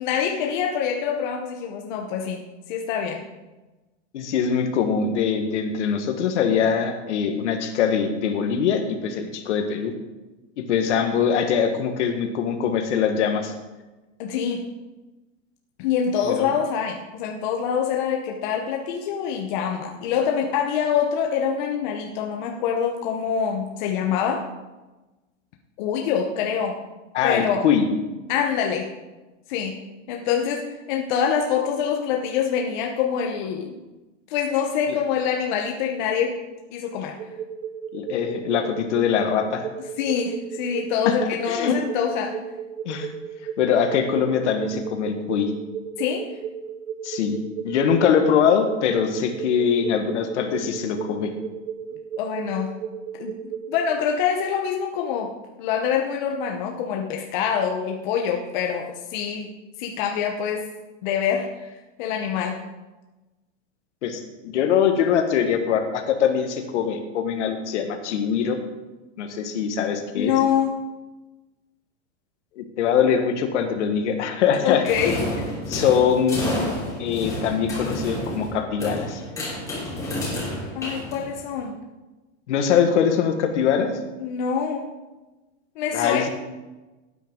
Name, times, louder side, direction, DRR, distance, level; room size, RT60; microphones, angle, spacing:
voice 1, 0.0-2.4 2.7-3.2 14.2-14.7 15.8-24.4 25.8-26.8 27.2-27.6 28.3-28.9 29.5-29.8 30.1-33.8 34.3-36.4 36.7-37.1 40.0-42.4 46.0-46.3 52.2-52.7 53.2-53.4 53.7-55.3 55.6-59.5 59.8-60.6 61.0-61.7 62.0-62.6 70.1-70.7 74.6-75.5 80.7-81.7 84.2-84.9 85.8-86.3, left 7 dB, 40° left, 1 dB, 1.0 m, -25 dB
voice 2, 4.1-9.9 10.6-13.5 16.2-16.5 27.1-27.9 34.9-35.0 37.9-39.7 41.0-41.7 42.8-43.1 43.6-45.5 47.0-47.4 47.6-51.3 64.0-68.6 69.2-70.3 72.5-75.0 75.7-76.4 77.0-79.2 82.5-83.9 85.9-86.3, left 7 dB, 65° left, 6 dB, 1.7 m, -22 dB
sound 1, 37.2-53.9, right 8 dB, 40° right, 0.9 m, -34 dB
sound 2, 74.8-81.6, left 1 dB, 10° left, 3.1 m, -30 dB
15.5 x 9.1 x 3.8 m, 1.1 s
supercardioid pair, 170°, 38 cm